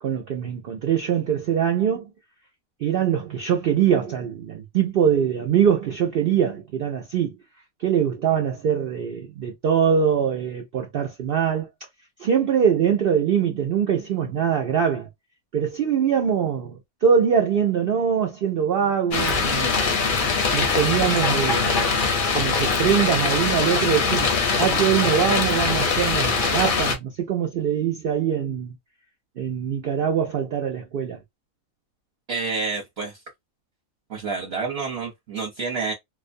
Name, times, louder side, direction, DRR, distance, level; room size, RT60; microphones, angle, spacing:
voice 1, 0.0-2.1 2.8-7.3 7.8-11.7 12.2-15.1 15.5-19.8 20.5-21.9 22.3-24.3 24.6-28.7 29.4-31.2, right 8 dB, 75° right, 0.5 m, -23 dB
sound 1, 19.1-27.0, left 4 dB, 55° left, 0.6 m, -22 dB
voice 2, 32.3-33.2 34.1-35.9, right 4 dB, 55° right, 0.9 m, -28 dB
2.4 x 2.1 x 2.5 m
omnidirectional pair, 1.5 m